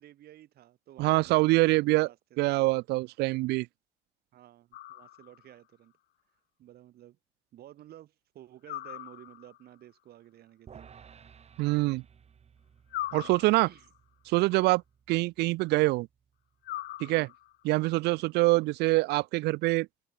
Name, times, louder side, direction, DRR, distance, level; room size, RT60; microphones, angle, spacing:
voice 1, 0.0-2.7 4.3-5.9 6.6-7.2 7.5-10.9 13.6-13.9 17.0-17.3, right 13 dB, 65° right, 7.0 m, -52 dB
voice 2, 1.0-2.1 2.4-3.7 11.6-12.0 13.1-13.7 14.3-14.8 15.1-16.1 17.0-17.3 17.6-19.9, right 21 dB, 85° right, 0.4 m, -25 dB
sound 1, 4.7-5.6 8.7-9.7 12.9-14.0 16.6-17.6, left 16 dB, 75° left, 2.0 m, -40 dB
sound 2, 10.7-17.0, right 7 dB, 40° right, 4.0 m, -57 dB
cardioid pair, 110°, 17 cm